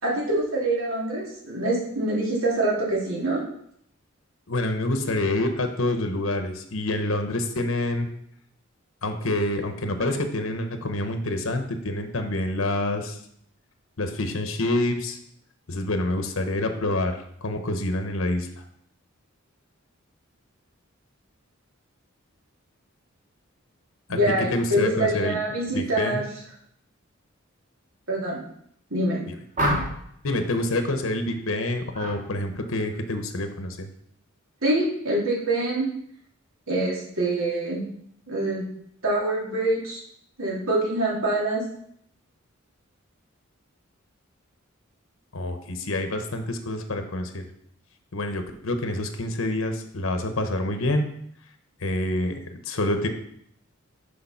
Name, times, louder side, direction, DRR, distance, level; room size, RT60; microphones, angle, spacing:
voice 1, 0.0-3.4 24.1-26.3 28.1-28.4 28.9-29.2 34.6-35.9 36.7-37.8 38.3-38.6 39.0-40.0 40.4-41.6, right 1 dB, 90° right, -4 dB, 2.8 m, -25 dB
voice 2, 4.5-8.1 9.0-13.2 14.0-15.2 15.7-18.5 24.1-24.2 24.5-25.4 25.7-26.2 30.2-33.9 45.3-47.4 48.1-51.1 51.8-53.1, left 1 dB, 80° left, 7 dB, 0.9 m, -27 dB
sound 1, 29.5-30.2 31.9-32.2 32.6-33.0, equal, 40° right, 1.9 m, -27 dB
6.6 x 5.2 x 5.6 m, 0.70 s
head